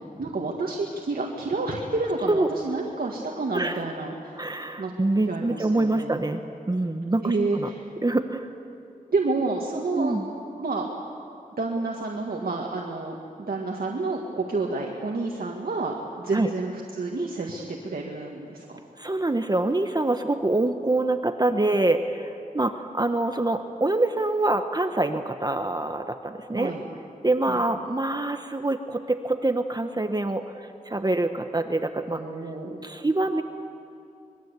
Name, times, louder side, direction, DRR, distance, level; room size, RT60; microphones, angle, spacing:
voice 1, 0.2-4.3 4.8-4.9 5.3-6.1 7.2-7.8 9.1-10.2 10.6-10.9 11.6-18.7 26.5-26.8 27.5-27.6 32.1-32.8, right 3 dB, 85° right, -1 dB, 2.0 m, -29 dB
voice 2, 4.3-6.4 6.7-7.7 8.0-8.5 9.9-10.3 16.3-16.5 19.0-26.7 27.2-32.2 32.8-33.4, right 2 dB, 25° right, 7 dB, 1.0 m, -25 dB
26.0 x 22.0 x 8.3 m, 2.6 s
wide cardioid pair, 90°, 15 cm